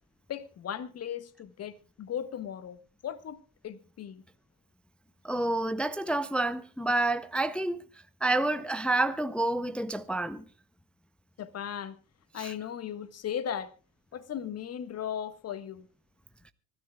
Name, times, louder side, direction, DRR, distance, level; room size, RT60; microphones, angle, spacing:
voice 1, 0.3-3.4 3.6-4.2 11.4-12.0 12.3-13.7 14.1-15.9, left 9 dB, 30° left, 1.5 m, -37 dB
voice 2, 5.2-7.9 8.2-10.4 12.4-12.5, right 2 dB, ahead, 0.5 m, -29 dB
25.5 x 13.0 x 2.3 m
hypercardioid pair, 80°, 46 cm